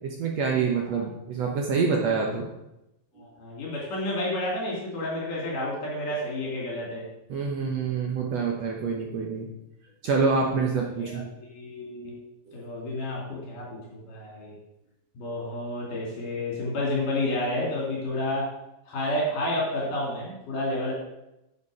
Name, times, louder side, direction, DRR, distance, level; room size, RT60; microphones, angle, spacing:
voice 1, 0.0-2.5 7.3-9.5 10.0-11.2 12.5-12.6, right 5 dB, 65° right, 0 dB, 1.8 m, -26 dB
voice 2, 3.2-7.1 10.3-10.6 11.0-11.3 11.5-12.1 12.5-14.6 15.2-18.5 18.9-20.9, left 1 dB, 65° left, -4 dB, 4.4 m, -30 dB
10.5 x 7.0 x 5.0 m, 0.89 s
omnidirectional pair, 4.1 m